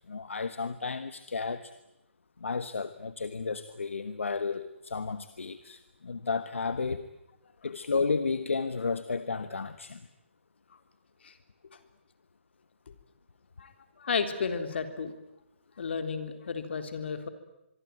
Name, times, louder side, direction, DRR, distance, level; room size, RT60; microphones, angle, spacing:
voice 1, 0.1-1.7 2.4-7.1 7.6-10.1, left 4 dB, 80° left, 12 dB, 1.3 m, -32 dB
voice 2, 14.0-15.1 15.8-17.3, left 5 dB, 60° left, 8 dB, 3.7 m, -33 dB
25.5 x 23.0 x 9.5 m, 0.88 s
figure-of-eight pair, 145°, 7 cm